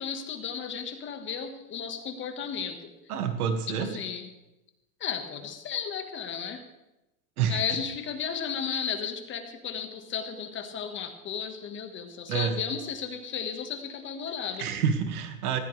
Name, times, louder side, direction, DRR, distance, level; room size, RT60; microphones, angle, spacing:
voice 1, 0.0-2.9 3.7-4.3 5.0-6.6 7.5-14.7, left 7 dB, 25° left, 6 dB, 1.7 m, -34 dB
voice 2, 3.1-4.0 7.4-7.6 12.3-12.6 14.6-15.6, right 7 dB, 80° right, 7 dB, 2.1 m, -28 dB
19.0 x 15.5 x 3.4 m, 0.94 s
supercardioid pair, 140°, 44 cm